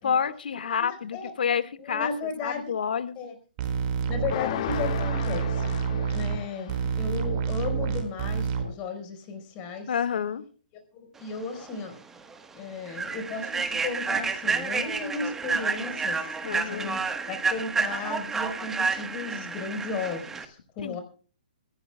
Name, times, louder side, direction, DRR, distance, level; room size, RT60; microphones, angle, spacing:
voice 1, 0.0-2.1 2.4-3.1 9.9-10.4 16.4-17.0 20.8-21.0, left 7 dB, 70° left, 12 dB, 1.9 m, -28 dB
voice 2, 0.8-1.3 1.8-2.7 3.2-3.3 4.1-5.8 6.1-9.9 10.9-12.0 12.5-17.0 17.3-21.0, left 4 dB, 25° left, 7 dB, 4.6 m, -35 dB
sound 1, 3.6-4.3 4.7-6.4 6.7-8.7, right 6 dB, 30° right, 4.9 m, -28 dB
sound 2, 4.3-7.0, left 10 dB, 40° left, 1.5 m, -35 dB
Human voice / Train, 11.6-11.7 12.2-12.3 12.9-20.4, right 4 dB, 5° right, 1.3 m, -30 dB
27.0 x 14.5 x 2.3 m, 0.39 s
hypercardioid pair, 160°, 5 cm